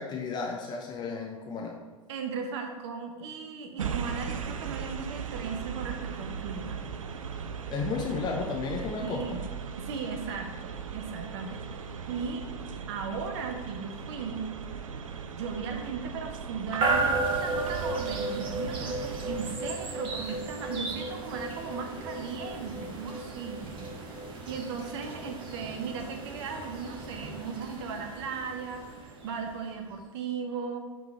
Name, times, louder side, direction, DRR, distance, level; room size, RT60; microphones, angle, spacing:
voice 1, 0.0-1.8 7.7-9.2, left 4 dB, 25° left, 0 dB, 0.8 m, -33 dB
voice 2, 2.1-6.8 9.0-9.4 9.8-12.4 12.9-14.4 15.3-23.6 24.5-30.8, right 5 dB, 55° right, 4 dB, 0.9 m, -37 dB
sound 1, 3.8-19.6, right 6 dB, 75° right, 0.5 m, -38 dB
sound 2, 16.8-29.8, right 3 dB, 30° right, 1.3 m, -34 dB
7.3 x 3.8 x 4.2 m, 1.3 s
figure-of-eight pair, 90°, 17 cm